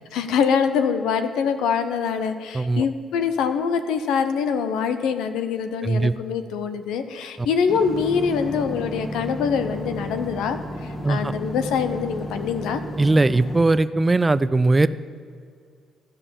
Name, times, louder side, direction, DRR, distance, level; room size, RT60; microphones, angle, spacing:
voice 1, 0.1-12.8, left 6 dB, 90° left, 9 dB, 0.7 m, -24 dB
voice 2, 2.5-2.9 5.8-6.1 7.4-7.5 11.0-11.3 13.0-14.9, right 2 dB, 20° right, 16 dB, 0.4 m, -19 dB
sound 1, 7.7-13.6, equal, 35° left, 2.0 m, -33 dB
13.0 x 5.4 x 7.1 m, 2.3 s
cardioid pair, 90°, 0 cm